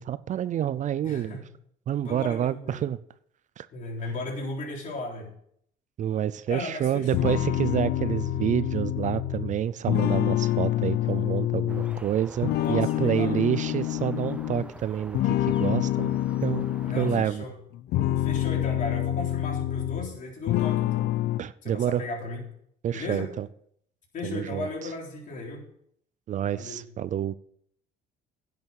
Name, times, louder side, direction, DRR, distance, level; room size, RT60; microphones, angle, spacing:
voice 1, 0.0-1.4 1.9-3.0 3.6-3.7 6.0-16.1 16.4-16.7 17.0-17.4 21.4-22.0 22.8-23.5 24.2-24.9 26.3-27.3, right 10 dB, 45° right, 16 dB, 0.5 m, -28 dB
voice 2, 1.0-1.4 2.0-2.8 3.7-5.3 6.5-7.3 12.5-13.5 16.8-17.5 18.2-21.1 21.6-22.4 22.9-23.3 24.1-25.6 26.5-26.8, left 2 dB, 50° left, -1 dB, 3.8 m, -36 dB
sound 1, 7.1-12.0 12.4-14.7 15.1-17.3 17.7-20.2 20.5-21.4, left 13 dB, 70° left, 0.6 m, -27 dB
sound 2, 11.7-17.2, right 2 dB, 5° right, 0.7 m, -46 dB
10.5 x 7.2 x 6.4 m, 0.67 s
cardioid pair, 110°, 17 cm